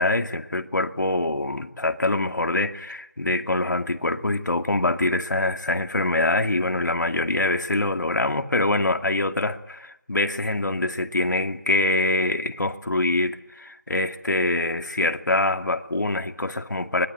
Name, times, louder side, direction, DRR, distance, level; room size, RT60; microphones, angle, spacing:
voice 1, 0.0-17.1, left 2 dB, 80° left, 2.4 m, -24 dB
25.0 x 22.5 x 9.2 m
figure-of-eight pair, 175°, 10 cm